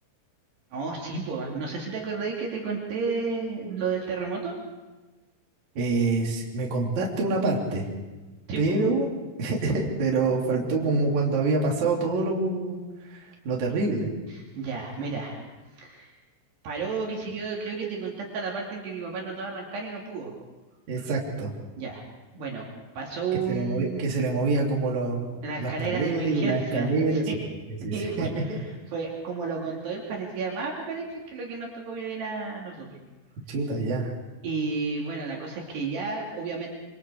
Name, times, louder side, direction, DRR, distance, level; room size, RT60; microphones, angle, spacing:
voice 1, 0.7-4.6 8.5-8.8 14.3-15.4 15.7-16.1 16.6-20.3 21.0-21.1 21.8-22.7 22.9-24.0 25.4-27.3 27.9-33.0 34.4-36.8, right 4 dB, 60° right, -2 dB, 4.4 m, -32 dB
voice 2, 5.8-7.9 8.6-9.1 9.4-12.8 13.1-14.1 20.9-21.5 23.5-27.4 27.7-28.6 33.5-34.1, right 3 dB, 40° right, -2 dB, 3.9 m, -26 dB
26.5 x 25.5 x 4.8 m, 1.2 s
omnidirectional pair, 5.9 m